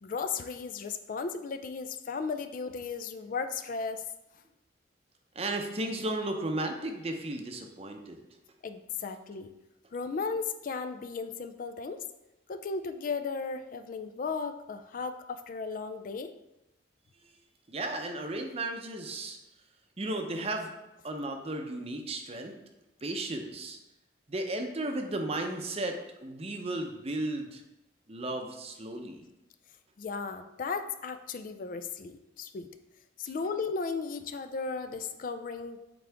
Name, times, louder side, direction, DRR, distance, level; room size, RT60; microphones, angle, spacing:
voice 1, 0.0-4.0 8.6-9.5 9.9-12.0 12.5-16.3 30.0-32.7 33.2-35.8, left 4 dB, 45° left, 9 dB, 0.3 m, -35 dB
voice 2, 5.3-8.2 17.7-19.4 20.0-20.7 21.0-22.5 23.0-23.8 24.3-26.0 26.2-27.6 28.1-29.2, right 2 dB, 30° right, 4 dB, 0.7 m, -34 dB
8.1 x 3.8 x 3.4 m, 0.94 s
head